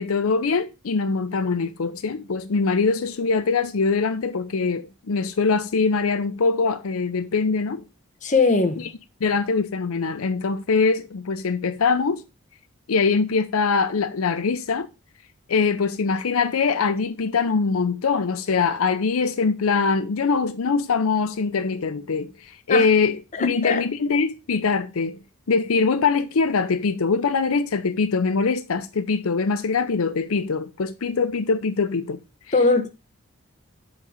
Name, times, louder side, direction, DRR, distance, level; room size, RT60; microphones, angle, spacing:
voice 1, 0.0-7.8 8.8-8.9 9.2-12.2 12.9-14.9 15.5-25.2 25.5-32.2, left 4 dB, 80° left, 0.6 m, -23 dB
voice 2, 8.2-8.9 22.7-22.9 23.3-23.8 32.5-32.9, left 3 dB, 35° left, 0.9 m, -20 dB
8.1 x 3.9 x 4.9 m
head